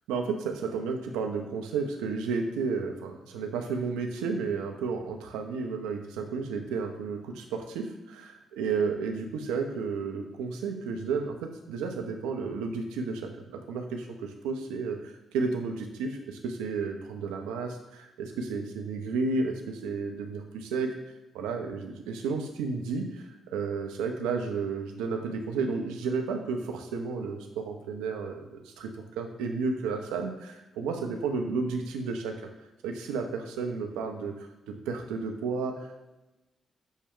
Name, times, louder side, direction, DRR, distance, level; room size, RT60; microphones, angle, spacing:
voice 1, 0.1-20.9 21.3-28.9 29.2-32.3 32.8-36.0, right 4 dB, 85° right, 4 dB, 0.5 m, -32 dB
6.2 x 2.2 x 3.6 m, 0.99 s
hypercardioid pair, 45°, 0 cm